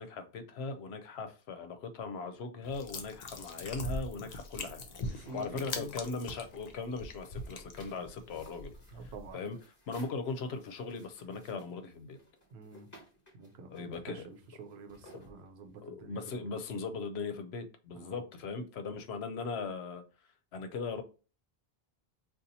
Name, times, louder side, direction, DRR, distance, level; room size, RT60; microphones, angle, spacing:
voice 1, 0.0-4.8 5.2-8.7 9.0-9.6 9.9-12.2 13.7-14.3 15.8-20.0 20.5-21.0, left 4 dB, 80° left, 0.8 m, -39 dB
sound 1, 2.6-9.3, left 2 dB, 50° left, 0.6 m, -42 dB
voice 2, 5.0-5.9 8.9-9.4 12.5-12.9 13.3-16.5 17.9-18.2, right 3 dB, 80° right, 0.9 m, -48 dB
sound 2, 6.9-16.0, equal, 15° left, 1.1 m, -60 dB
2.7 x 2.4 x 4.0 m
omnidirectional pair, 1.1 m